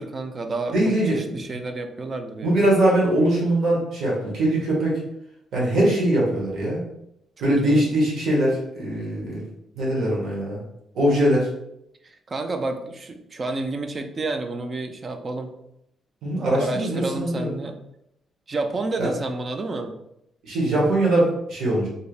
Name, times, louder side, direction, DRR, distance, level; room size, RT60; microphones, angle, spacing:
voice 1, 0.0-2.7 7.4-7.9 12.0-15.5 16.5-17.8 18.5-20.0, right 2 dB, 30° right, 6 dB, 0.3 m, -30 dB
voice 2, 0.7-1.6 2.4-5.0 5.5-6.8 7.4-9.4 9.8-10.6 10.9-11.5 16.2-17.5 19.0-19.1 20.4-21.9, right 1 dB, 60° right, -4 dB, 1.1 m, -22 dB
3.2 x 2.7 x 2.4 m, 0.79 s
cardioid pair, 160°, 0 cm